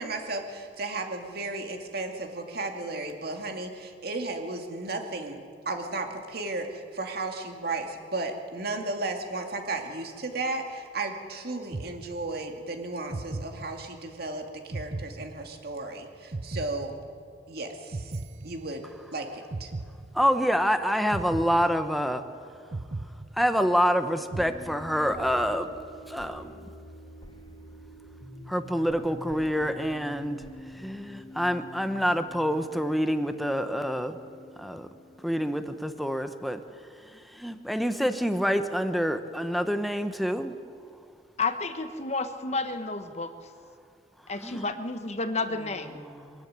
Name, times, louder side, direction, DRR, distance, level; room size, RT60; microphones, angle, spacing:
voice 1, 0.0-5.4 5.7-17.0 17.5-18.1 18.4-19.7, right 2 dB, 60° right, 3 dB, 2.4 m, -34 dB
sound 1, 11.7-12.6 13.1-14.2 14.7-15.9 16.3-17.5 17.9-19.1 19.5-20.6 21.1-22.3 22.7-23.9 24.3-25.2, right 2 dB, 40° right, 0.6 m, -38 dB
voice 2, 20.1-22.2 23.3-25.7 26.1-26.7 28.5-30.4 30.7-34.2 34.6-34.9 35.2-36.6 37.0-40.5 44.4-44.7, equal, ahead, 8 dB, 1.0 m, -27 dB
sound 2, 24.3-35.9, left 1 dB, 25° left, 2.4 m, -47 dB
voice 3, 41.4-43.3 44.3-46.0, left 3 dB, 40° left, 8 dB, 1.2 m, -31 dB
23.5 x 13.0 x 9.4 m, 2.3 s
head